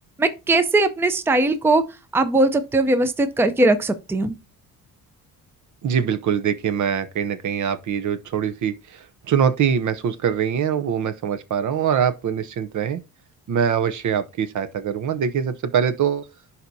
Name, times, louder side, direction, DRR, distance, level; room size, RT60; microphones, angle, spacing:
voice 1, 0.2-1.8 2.1-4.3, right 2 dB, 5° right, 0.5 m, -19 dB
voice 2, 5.8-13.0 13.5-16.2, right 8 dB, 55° right, 0.7 m, -23 dB
11.0 x 4.2 x 2.7 m
cardioid pair, 125°, 35 cm